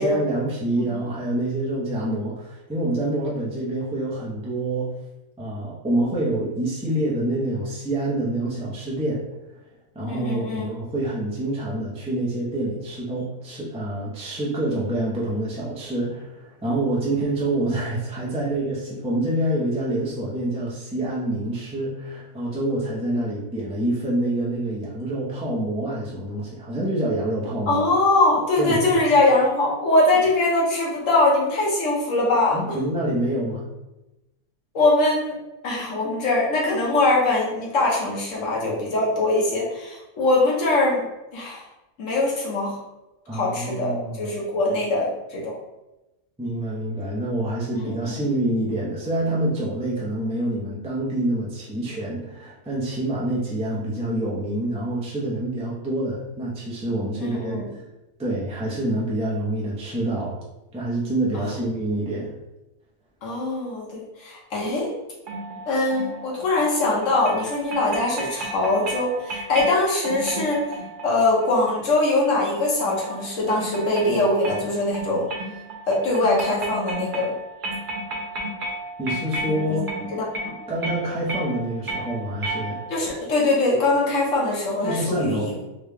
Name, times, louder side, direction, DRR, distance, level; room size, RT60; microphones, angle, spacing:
voice 1, 0.0-4.9 5.4-9.2 9.9-27.8 28.6-29.0 32.5-33.7 43.3-44.3 46.4-57.6 58.2-60.4 60.7-62.4 64.6-64.7 79.0-79.8 80.7-82.8 84.8-85.5, right 1 dB, 5° right, -6 dB, 0.5 m, -26 dB
voice 2, 10.1-10.7 27.7-32.7 34.7-35.4 35.6-41.0 41.3-41.6 42.0-42.8 43.3-45.6 47.7-48.2 57.2-57.7 61.3-61.4 63.2-64.9 65.7-70.7 71.0-75.3 75.9-77.3 79.5-80.6 82.9-85.7, left 2 dB, 65° left, -3 dB, 1.3 m, -22 dB
sound 1, 65.3-83.1, right 2 dB, 55° right, 0.5 m, -34 dB
3.7 x 2.2 x 3.4 m, 0.98 s
omnidirectional pair, 1.5 m